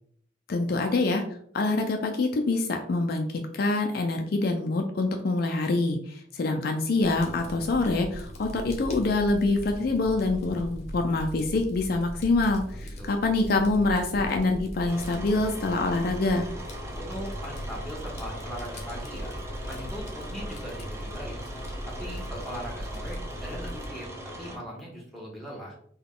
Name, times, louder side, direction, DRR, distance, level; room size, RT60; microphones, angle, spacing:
voice 1, 0.5-1.2 1.5-16.5, left 2 dB, 55° left, 4 dB, 0.4 m, -25 dB
Fire, 7.0-23.9, equal, 35° left, 0.8 m, -39 dB
sound 1, 14.9-24.6, right 1 dB, 15° right, 0.5 m, -40 dB
voice 2, 16.8-19.3 19.7-21.4 21.9-24.1 24.4-25.7, equal, ahead, -2 dB, 1.0 m, -40 dB
3.7 x 2.3 x 3.7 m, 0.63 s
head